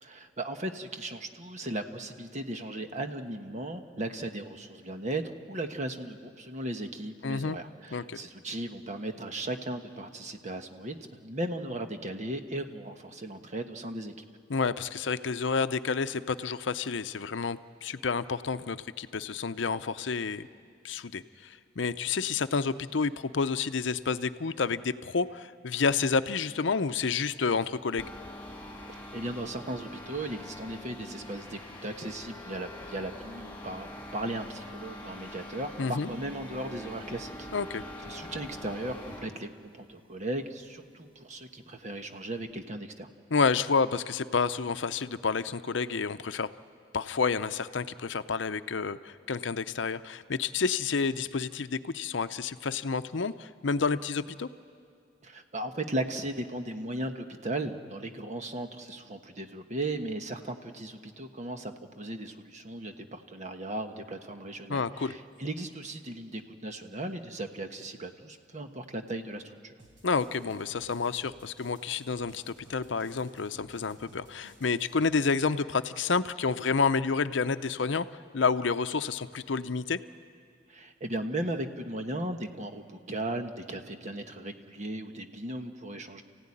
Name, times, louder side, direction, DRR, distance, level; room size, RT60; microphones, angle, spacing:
voice 1, 0.0-5.2 5.5-14.2 28.9-37.5 38.1-43.1 55.2-69.7 80.7-86.2, right 1 dB, 40° right, 6 dB, 1.3 m, -37 dB
voice 2, 7.2-7.6 7.9-8.2 14.5-20.5 20.8-28.1 35.8-36.1 37.5-37.8 43.3-46.5 46.9-54.5 64.7-65.1 70.0-78.1 78.3-80.0, left 5 dB, 75° left, 12 dB, 0.7 m, -29 dB
sound 1, 28.0-39.4, left 1 dB, 10° left, 3.5 m, -44 dB
sound 2, 69.8-75.5, right 1 dB, 85° right, 5.7 m, -57 dB
28.5 x 16.0 x 9.9 m, 2.2 s
head